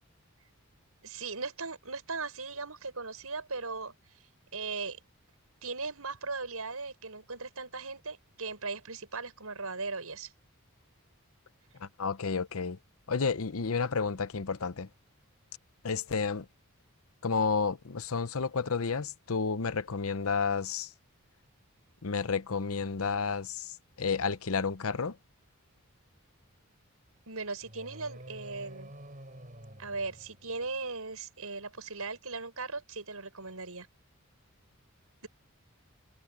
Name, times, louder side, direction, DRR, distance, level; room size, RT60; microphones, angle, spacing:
voice 1, 1.0-3.9 4.5-5.0 5.6-10.3 27.3-28.9 29.8-33.9, right 4 dB, 80° right, 6.0 m, -38 dB
voice 2, 11.8-12.8 13.1-14.9 15.8-16.5 17.2-20.9 22.0-25.2, left 5 dB, 75° left, 0.8 m, -31 dB
sound 1, 27.6-30.9, right 1 dB, 35° right, 7.7 m, -49 dB
head